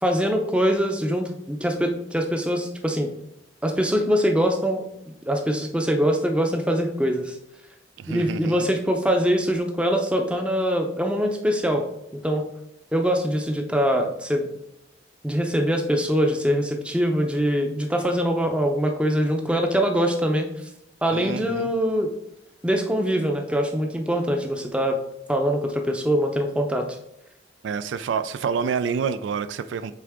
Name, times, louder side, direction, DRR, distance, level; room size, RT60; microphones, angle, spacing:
voice 1, 0.0-3.1 3.6-4.8 5.3-7.4 8.1-11.8 12.2-12.4 12.9-14.5 15.2-20.5 21.0-22.1 22.6-25.0 25.3-26.8, equal, 5° right, 3 dB, 0.6 m, -23 dB
voice 2, 8.0-8.7 21.1-21.7 27.6-30.0, right 6 dB, 80° right, 13 dB, 0.3 m, -28 dB
8.2 x 3.5 x 3.6 m, 0.83 s
head